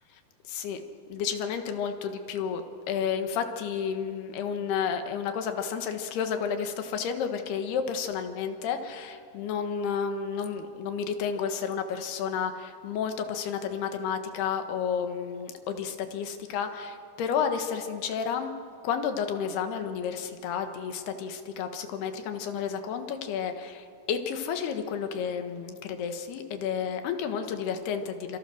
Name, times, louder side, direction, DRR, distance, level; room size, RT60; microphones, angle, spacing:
voice 1, 0.5-0.8 1.1-18.5 18.8-28.4, left 7 dB, 80° left, 7 dB, 3.5 m, -31 dB
27.5 x 26.5 x 6.4 m, 2.4 s
omnidirectional pair, 4.6 m